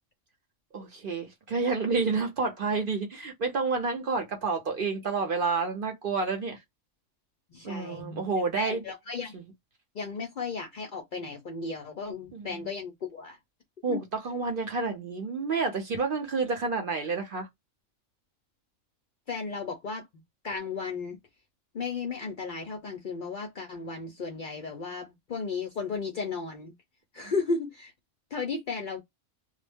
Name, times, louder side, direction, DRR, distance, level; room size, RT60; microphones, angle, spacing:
voice 1, 0.7-6.6 7.6-8.8 9.3-9.4 12.3-12.5 13.8-17.5, right 4 dB, 50° right, 0.7 m, -29 dB
voice 2, 7.5-8.2 8.5-9.4 9.9-13.4 13.9-14.0 19.3-20.1 20.4-21.2 21.7-26.7 27.1-27.9 28.3-29.0, left 4 dB, 55° left, 0.5 m, -34 dB
2.2 x 2.0 x 3.3 m
omnidirectional pair, 1.3 m